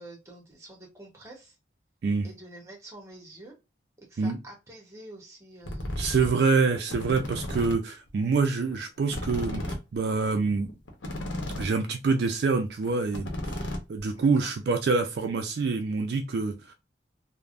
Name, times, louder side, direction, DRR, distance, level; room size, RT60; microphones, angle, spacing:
voice 1, 0.0-1.6 2.2-3.5 4.0-6.3 6.6-6.7 14.2-14.5, right 1 dB, 15° right, 0.8 m, -47 dB
sound 1, 5.6-6.3 6.7-7.7 8.1-8.2 8.4-8.5 8.7-8.8 9.1-11.7 12.1-12.2 12.6-12.7 12.8-14.2, left 1 dB, 80° left, 0.8 m, -34 dB
voice 2, 6.0-10.7 11.6-16.7, right 4 dB, 60° right, 0.3 m, -26 dB
3.2 x 2.0 x 2.4 m
head